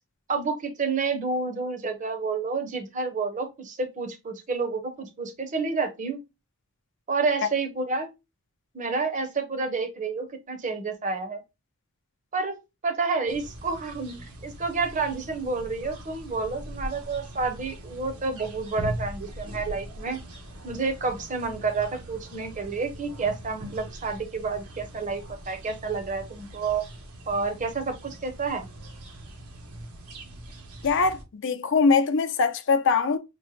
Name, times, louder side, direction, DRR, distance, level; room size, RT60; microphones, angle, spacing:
voice 1, 0.3-6.2 7.1-8.1 8.7-11.4 12.3-20.2 20.6-26.8 27.3-28.7, right 4 dB, 35° right, 0.7 m, -29 dB
sound 1, 13.3-31.2, right 1 dB, 85° right, 1.0 m, -41 dB
voice 2, 30.8-33.2, left 4 dB, 55° left, 0.6 m, -22 dB
5.9 x 2.1 x 3.0 m
head